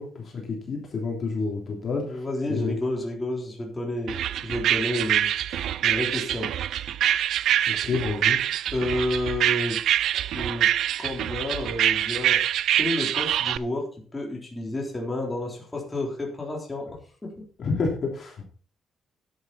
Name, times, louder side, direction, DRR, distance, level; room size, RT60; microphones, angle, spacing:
voice 1, 0.0-2.8 7.7-8.4 17.6-18.4, left 4 dB, 40° left, 0 dB, 3.1 m, -29 dB
voice 2, 2.0-6.5 8.7-9.8 10.1-10.7 11.0-12.4 12.7-17.4, left 1 dB, 15° left, -1 dB, 3.6 m, -31 dB
sound 1, 4.1-13.6, right 11 dB, 70° right, 0.4 m, -25 dB
10.5 x 9.8 x 4.2 m, 0.41 s
cardioid pair, 140°, 0 cm